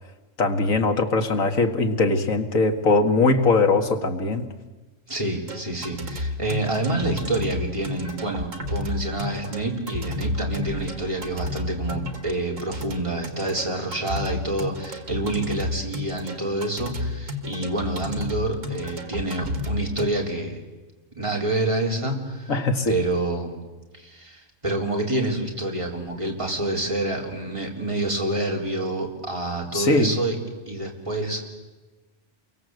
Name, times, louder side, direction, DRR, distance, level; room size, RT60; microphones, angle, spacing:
voice 1, 0.4-4.5 22.5-23.0 29.7-30.1, left 3 dB, 85° left, 6 dB, 2.2 m, -21 dB
voice 2, 5.1-20.6 21.2-22.5 22.9-23.6 23.9-30.3 30.7-31.5, right 2 dB, 25° right, 0 dB, 4.0 m, -27 dB
sound 1, 5.5-20.0, left 2 dB, 75° right, 2.3 m, -32 dB
29.0 x 23.5 x 7.9 m, 1.2 s
omnidirectional pair, 1.4 m